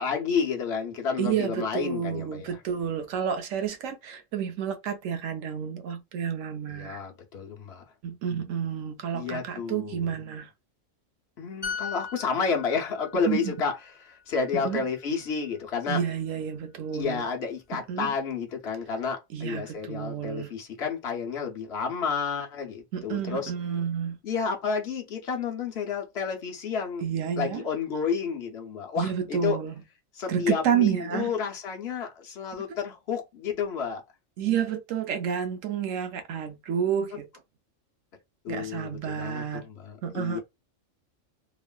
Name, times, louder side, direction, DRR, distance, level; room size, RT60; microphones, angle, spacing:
voice 1, 0.0-2.6 6.7-7.8 9.1-10.1 11.4-13.7 14.0-16.0 16.9-23.5 24.2-27.0 27.4-29.6 30.1-34.0 38.4-40.4, left 5 dB, 60° left, 0.9 m, -30 dB
voice 2, 1.2-7.0 8.0-10.5 13.3-13.5 14.5-14.8 15.9-17.3 17.7-18.1 19.3-20.5 22.9-24.2 27.0-27.6 29.0-29.8 30.3-31.3 34.4-37.3 38.5-39.7 40.0-40.4, right 8 dB, 85° right, 1.0 m, -30 dB
sound 1, 11.6-15.2 15.5-15.8, left 6 dB, 30° left, 0.5 m, -39 dB
3.0 x 2.4 x 2.2 m
omnidirectional pair, 1.3 m